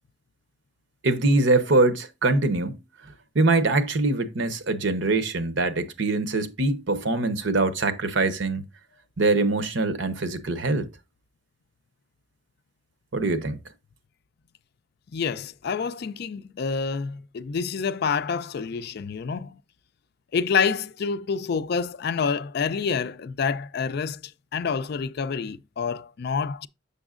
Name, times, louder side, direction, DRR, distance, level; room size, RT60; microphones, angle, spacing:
voice 1, 1.0-2.8 3.3-8.7 9.2-10.9 13.1-13.6, right 2 dB, 75° right, 0.9 m, -23 dB
voice 2, 15.1-19.6 20.3-26.7, left 5 dB, 55° left, 0.4 m, -28 dB
7.1 x 6.8 x 2.4 m
head